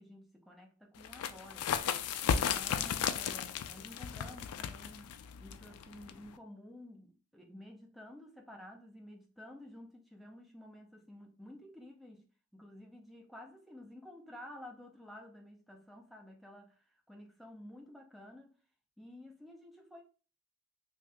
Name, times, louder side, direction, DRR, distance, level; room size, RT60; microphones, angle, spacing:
voice 1, 0.0-1.7 2.2-12.3 12.5-18.6 19.0-20.0, left 1 dB, ahead, 0.4 m, -52 dB
sound 1, 1.0-6.4, left 8 dB, 75° left, 0.3 m, -35 dB
2.8 x 2.6 x 3.3 m
head